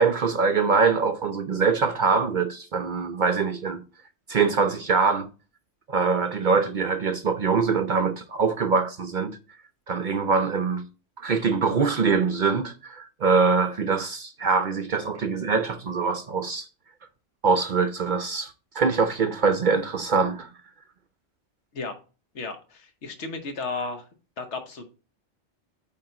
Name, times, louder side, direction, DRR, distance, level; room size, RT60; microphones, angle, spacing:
voice 1, 0.0-3.8 4.3-5.3 5.9-9.4 9.9-10.8 11.2-16.7 17.4-20.5, right 5 dB, 55° right, 0.6 m, -23 dB
voice 2, 22.3-24.1 24.4-24.9, left 4 dB, 75° left, 1.4 m, -34 dB
8.7 x 3.6 x 3.9 m
omnidirectional pair, 1.2 m